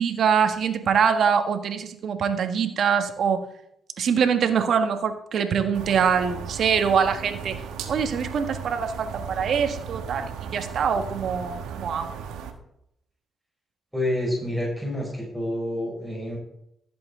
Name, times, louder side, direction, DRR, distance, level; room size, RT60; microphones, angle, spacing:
voice 1, 0.0-3.4 4.0-7.6 7.9-12.2, right 7 dB, 65° right, 7 dB, 1.4 m, -24 dB
sound 1, 5.7-12.5, right 7 dB, 85° right, 1.3 m, -36 dB
voice 2, 13.9-16.4, left 1 dB, 5° right, -3 dB, 5.3 m, -28 dB
15.0 x 7.8 x 3.8 m, 0.75 s
supercardioid pair, 70°, 0 cm